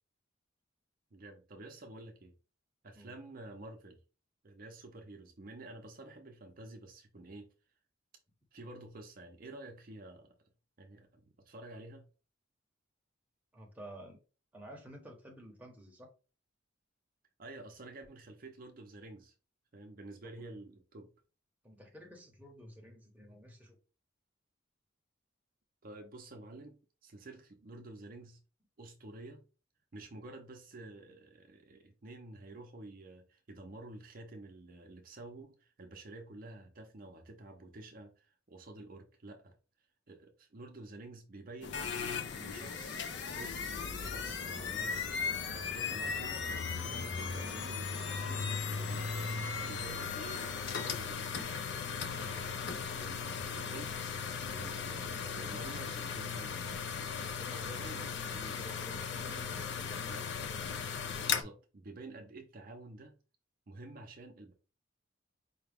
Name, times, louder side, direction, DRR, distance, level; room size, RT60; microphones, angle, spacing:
voice 1, 1.1-2.3 2.8-4.0 4.4-7.5 8.5-10.3 10.8-12.1 17.4-19.4 19.7-21.1 25.8-28.4 28.8-29.4 29.9-39.6 40.1-43.0 43.3-49.1 49.6-52.5 52.9-54.0 54.5-56.9 57.4-58.6 59.8-60.3 61.3-63.1 63.7-64.5, right 2 dB, 45° right, 0.6 m, -50 dB
voice 2, 13.5-14.2 14.5-16.1 20.4-20.5 21.6-23.8 57.3-60.3, equal, 10° right, 0.8 m, -52 dB
sound 1, 41.6-61.4, left 6 dB, 60° left, 0.5 m, -37 dB
4.8 x 2.3 x 3.4 m
head